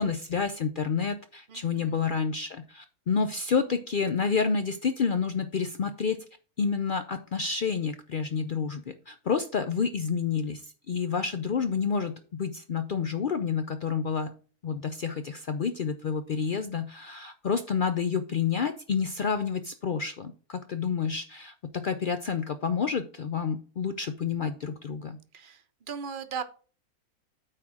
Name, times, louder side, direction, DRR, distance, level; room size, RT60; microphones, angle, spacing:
voice 1, 0.0-6.2 6.6-14.3 14.6-25.2, left 6 dB, 85° left, 9 dB, 0.4 m, -29 dB
voice 2, 1.5-2.0 25.3-26.4, right 6 dB, 45° right, 10 dB, 0.8 m, -38 dB
9.0 x 3.7 x 6.2 m, 0.39 s
omnidirectional pair, 1.6 m